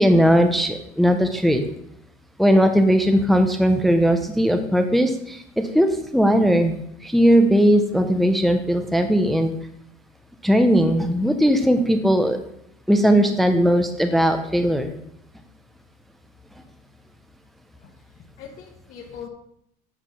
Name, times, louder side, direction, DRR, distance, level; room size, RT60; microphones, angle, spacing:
voice 1, 0.0-1.6 2.4-6.8 7.0-9.5 10.4-12.4 12.9-14.9, equal, ahead, 7 dB, 0.5 m, -18 dB
voice 2, 18.2-19.3, left 7 dB, 45° left, -2 dB, 1.2 m, -41 dB
9.0 x 4.4 x 5.7 m, 0.74 s
cardioid pair, 145°, 18 cm